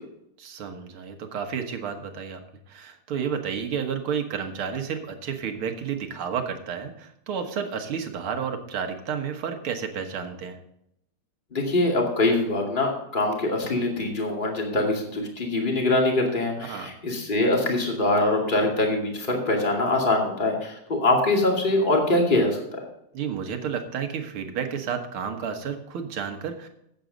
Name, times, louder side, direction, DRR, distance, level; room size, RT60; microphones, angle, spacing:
voice 1, 0.4-2.4 2.7-10.6 16.6-16.9 23.1-26.7, right 7 dB, 80° right, 5 dB, 2.2 m, -31 dB
voice 2, 11.5-22.8, left 2 dB, 25° left, 0 dB, 2.5 m, -23 dB
13.5 x 8.5 x 3.9 m, 0.78 s
omnidirectional pair, 2.3 m